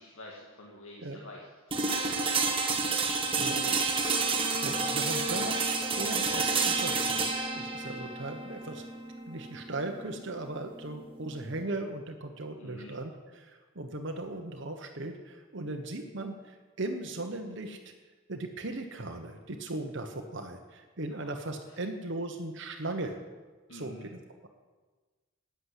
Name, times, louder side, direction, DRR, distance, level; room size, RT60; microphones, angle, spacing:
voice 1, 0.0-4.4 12.6-12.9 21.1-21.3 21.7-21.8 23.7-24.1, left 1 dB, 70° left, -2 dB, 2.0 m, -50 dB
sound 1, 1.7-11.6, right 4 dB, 25° right, 1.3 m, -30 dB
voice 2, 3.4-3.8 4.6-8.8 9.3-17.9 18.3-23.2 23.7-24.5, right 2 dB, 55° right, 4 dB, 1.1 m, -38 dB
14.0 x 9.8 x 8.2 m, 1.4 s
head